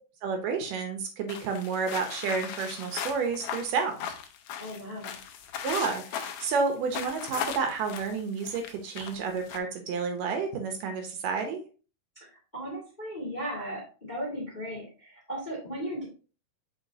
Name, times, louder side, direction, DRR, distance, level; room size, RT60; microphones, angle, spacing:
voice 1, 0.2-4.0 5.6-11.6, right 5 dB, 75° right, 5 dB, 2.3 m, -30 dB
sound 1, 1.3-9.6, left 8 dB, 80° left, 1.6 m, -38 dB
voice 2, 4.6-5.2 12.2-16.0, equal, 20° left, -4 dB, 1.3 m, -36 dB
7.0 x 4.9 x 2.7 m, 0.36 s
omnidirectional pair, 4.1 m